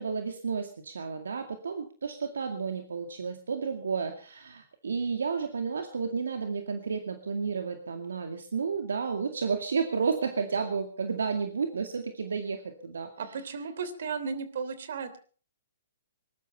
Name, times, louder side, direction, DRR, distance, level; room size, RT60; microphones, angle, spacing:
voice 1, 0.0-13.1, right 5 dB, 85° right, 6 dB, 2.2 m, -32 dB
voice 2, 13.2-15.2, right 5 dB, 65° right, 13 dB, 3.1 m, -35 dB
20.5 x 12.0 x 5.7 m, 0.42 s
hypercardioid pair, 140°, 0 cm